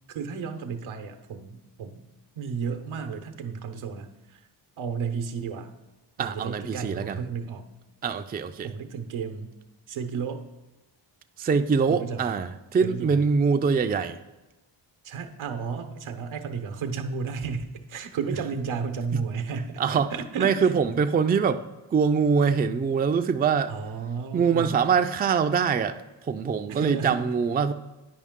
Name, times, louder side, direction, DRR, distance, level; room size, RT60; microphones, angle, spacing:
voice 1, 0.1-2.0 2.4-4.4 4.8-5.7 6.2-7.7 8.6-9.5 9.9-10.4 11.9-12.3 12.8-13.2 15.0-20.7 23.7-24.8 26.7-27.2, right 6 dB, 80° right, 0.9 m, -33 dB
voice 2, 6.2-7.2 8.0-8.7 11.4-14.2 18.5-18.7 19.1-19.2 19.8-20.1 20.4-21.6 21.9-23.7 24.3-27.7, right 6 dB, 20° right, 0.4 m, -24 dB
9.6 x 5.2 x 3.6 m
cardioid pair, 60°, 48 cm